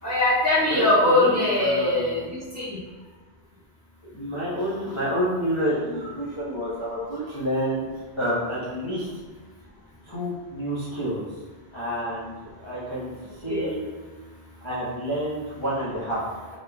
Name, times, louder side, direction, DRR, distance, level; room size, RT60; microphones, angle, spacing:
voice 1, 0.0-2.8 13.5-13.7, left 2 dB, 15° right, -11 dB, 1.4 m, -22 dB
voice 2, 0.6-2.1 4.0-7.9 8.2-9.1 10.0-11.4 11.7-13.8 14.6-16.2, equal, 30° left, -11 dB, 1.0 m, -29 dB
3.8 x 3.5 x 3.4 m, 1.4 s
omnidirectional pair, 1.1 m